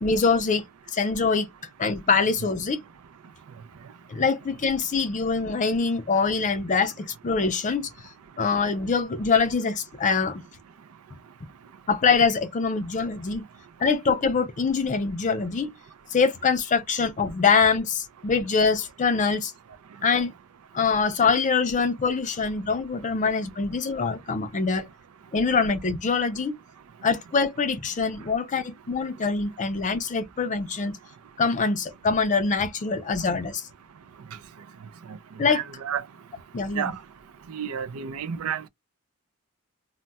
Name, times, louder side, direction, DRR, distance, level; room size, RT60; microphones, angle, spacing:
voice 1, 0.0-0.6 0.9-1.5 1.8-2.8 4.1-7.9 8.4-10.4 11.9-13.5 13.8-15.7 16.1-19.5 20.0-20.3 20.7-24.9 25.3-26.6 27.0-31.0 31.4-33.6 35.4-35.6 36.5-36.9, left 5 dB, 35° left, 0.4 m, -24 dB
voice 2, 35.5-36.0 36.7-36.9 37.5-38.7, right 8 dB, 70° right, 0.4 m, -30 dB
2.3 x 2.1 x 3.9 m
head